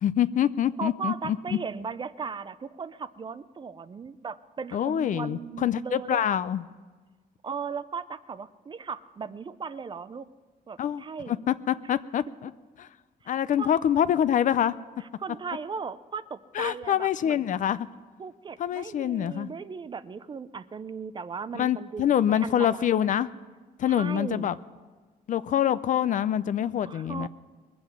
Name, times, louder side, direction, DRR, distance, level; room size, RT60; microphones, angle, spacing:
voice 1, 0.0-1.4 4.7-6.6 10.8-12.5 12.8-12.9 13.3-14.7 16.6-17.9 18.6-19.5 21.5-23.3 23.8-24.6 25.3-27.3, left 10 dB, 50° left, 15 dB, 0.4 m, -25 dB
voice 2, 0.8-6.4 7.4-10.3 10.7-11.4 13.2-13.7 15.0-17.5 18.2-22.9 23.8-24.5 26.8-27.3, right 5 dB, 30° right, 15 dB, 0.4 m, -37 dB
21.0 x 7.8 x 7.2 m, 1.4 s
cardioid pair, 145°, 17 cm